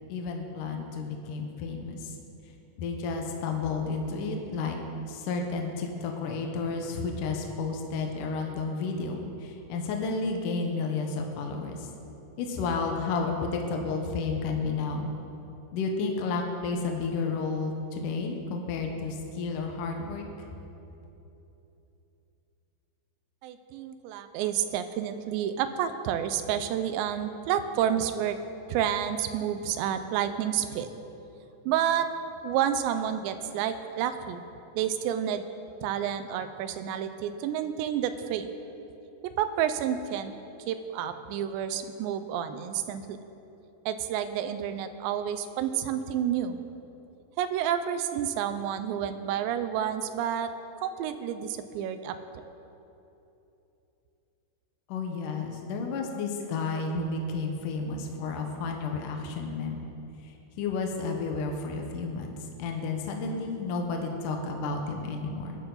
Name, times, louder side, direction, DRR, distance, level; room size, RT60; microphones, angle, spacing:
voice 1, 0.1-2.1 2.8-4.8 5.1-11.9 12.4-15.1 15.7-20.3 54.9-59.8 60.2-62.3 62.6-65.6, left 4 dB, 70° left, 2 dB, 2.1 m, -31 dB
voice 2, 23.4-28.4 28.7-30.9 31.7-32.1 32.4-34.4 34.8-35.4 35.8-38.5 39.2-40.3 40.7-43.2 43.9-46.6 47.4-50.5 50.8-52.2, right 9 dB, 85° right, 10 dB, 2.9 m, -29 dB
20.0 x 11.5 x 4.0 m, 2.9 s
omnidirectional pair, 5.1 m